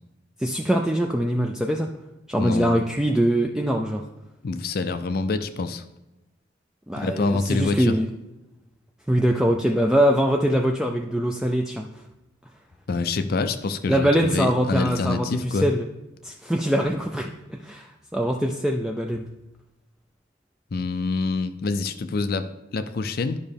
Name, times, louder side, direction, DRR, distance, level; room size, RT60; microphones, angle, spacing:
voice 1, 0.4-1.9 2.3-4.0 6.9-8.1 9.1-11.9 13.9-15.9 16.2-17.9 18.1-19.3, equal, 5° right, 2 dB, 0.4 m, -23 dB
voice 2, 2.4-2.9 4.4-5.8 7.0-8.0 12.9-15.7 20.7-23.4, left 3 dB, 55° left, 10 dB, 0.4 m, -26 dB
11.0 x 5.3 x 3.5 m, 0.99 s
head